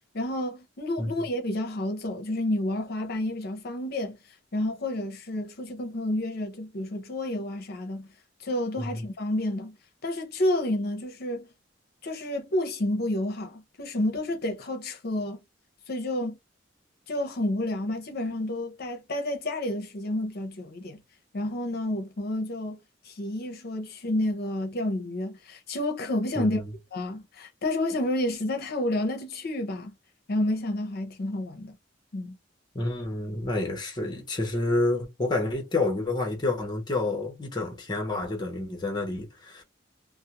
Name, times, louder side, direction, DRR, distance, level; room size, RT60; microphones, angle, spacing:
voice 1, 0.1-4.2 4.5-8.1 8.4-9.7 10.0-11.5 12.0-15.4 15.9-16.4 17.1-21.0 21.3-22.8 23.0-26.6 26.9-29.9 30.3-31.7 32.1-32.4, left 1 dB, 55° left, 0.6 m, -30 dB
voice 2, 26.4-26.7 32.7-39.6, left 2 dB, 25° left, 0.7 m, -29 dB
2.4 x 2.0 x 2.8 m
head